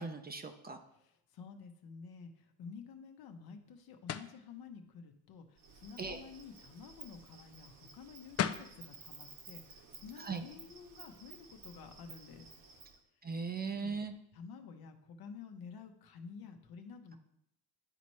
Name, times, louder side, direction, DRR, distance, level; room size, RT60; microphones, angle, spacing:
voice 1, 0.0-0.8 6.0-6.2 10.2-10.4 13.2-14.1, right 4 dB, 25° right, 6 dB, 0.7 m, -38 dB
voice 2, 0.9-12.5 13.7-14.0 14.3-17.2, left 5 dB, 60° left, 5 dB, 1.1 m, -51 dB
sound 1, 4.1-4.4 8.0-8.1 8.4-8.7, left 9 dB, 35° left, 0.5 m, -34 dB
Insect, 5.6-13.0, right 5 dB, 50° right, 1.4 m, -55 dB
11.0 x 4.1 x 3.1 m, 0.78 s
supercardioid pair, 85°, 41 cm